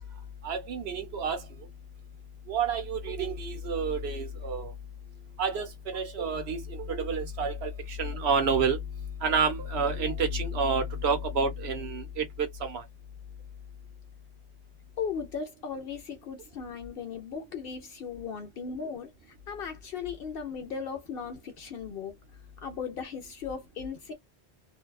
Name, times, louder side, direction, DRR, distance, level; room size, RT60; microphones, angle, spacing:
voice 1, 0.4-1.4 2.5-4.7 5.4-8.8 9.2-12.8, right 4 dB, 75° right, 1.0 m, -29 dB
voice 2, 15.0-19.1 19.5-22.2 22.6-24.1, left 6 dB, 65° left, 0.8 m, -37 dB
2.6 x 2.2 x 2.3 m
omnidirectional pair, 1.1 m